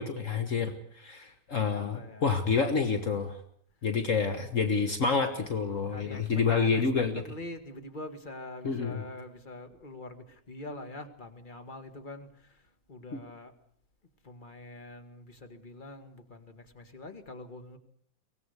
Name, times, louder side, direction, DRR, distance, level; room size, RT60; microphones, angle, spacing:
voice 1, 0.0-3.4 3.8-7.2 8.6-9.0 13.1-13.2, left 5 dB, 55° left, 7 dB, 0.8 m, -28 dB
voice 2, 1.7-2.3 5.8-12.6 12.9-13.5 14.2-17.8, left 2 dB, 20° left, 8 dB, 1.5 m, -44 dB
24.0 x 18.0 x 8.2 m, 0.64 s
omnidirectional pair, 3.6 m